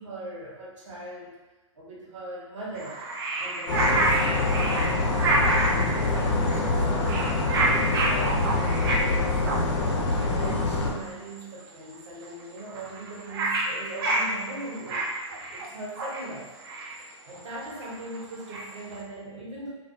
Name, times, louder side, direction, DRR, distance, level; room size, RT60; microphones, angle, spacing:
voice 1, 0.0-1.4 1.7-3.0 3.4-9.6 10.1-16.5 17.2-19.7, right 2 dB, 65° right, -5 dB, 1.0 m, -40 dB
sound 1, 2.7-6.0 6.5-6.7 7.0-9.1 9.4-9.6 10.2-10.3 10.5-10.7 11.0-11.4 11.6-11.7 11.9-12.0 12.2-18.9, right 2 dB, 50° right, 0.5 m, -28 dB
sound 2, 3.7-10.9, left 3 dB, 60° left, 0.7 m, -25 dB
2.5 x 2.3 x 2.5 m, 1.1 s
figure-of-eight pair, 115°, 17 cm